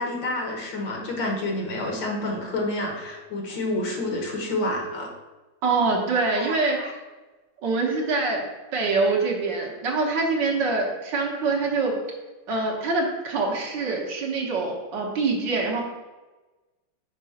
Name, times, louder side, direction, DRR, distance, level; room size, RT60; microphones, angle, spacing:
voice 1, 0.0-5.1 6.4-6.9, left 1 dB, 70° left, 0 dB, 1.9 m, -29 dB
voice 2, 5.6-6.8 7.6-8.4 8.7-12.0 12.5-15.8, right 3 dB, 65° right, 0 dB, 1.8 m, -24 dB
6.1 x 3.7 x 5.6 m, 1.2 s
omnidirectional pair, 2.1 m